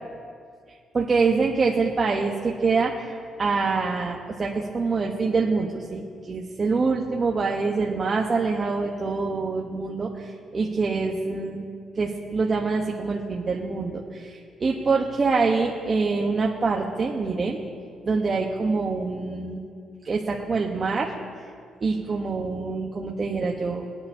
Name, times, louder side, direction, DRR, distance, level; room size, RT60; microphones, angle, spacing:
voice 1, 0.9-11.7 11.9-17.6 18.0-19.6 20.0-21.1 21.8-23.9, right 4 dB, 35° right, 0 dB, 1.0 m, -25 dB
21.0 x 9.5 x 2.8 m, 2.2 s
cardioid pair, 90°, 0 cm